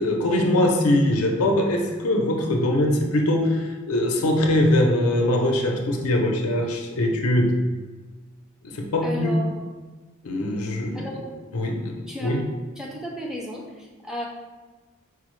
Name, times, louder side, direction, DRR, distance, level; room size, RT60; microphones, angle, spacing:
voice 1, 0.0-7.6 8.6-9.4 10.2-11.1 11.5-12.5, left 1 dB, 85° left, 2 dB, 0.5 m, -22 dB
voice 2, 9.0-9.6 10.9-11.4 12.1-12.4 12.8-14.3, equal, ahead, -2 dB, 0.4 m, -34 dB
4.6 x 2.0 x 3.0 m, 1.3 s
head